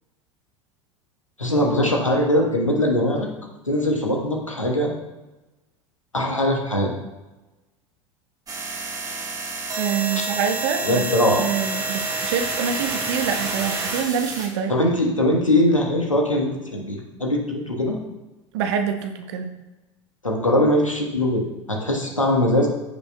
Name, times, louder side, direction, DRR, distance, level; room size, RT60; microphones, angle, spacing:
voice 1, 1.4-3.3 3.7-4.9 6.1-6.9 10.1-10.2 10.8-11.4 14.7-18.0 20.2-22.7, left 1 dB, 90° left, 0 dB, 1.3 m, -21 dB
sound 1, 8.5-14.5, right 3 dB, 20° right, 1.5 m, -28 dB
voice 2, 9.8-11.0 11.4-14.7 18.5-19.5, right 7 dB, 55° right, 6 dB, 0.9 m, -26 dB
14.5 x 5.4 x 2.3 m, 1.1 s
figure-of-eight pair, 75°, 16 cm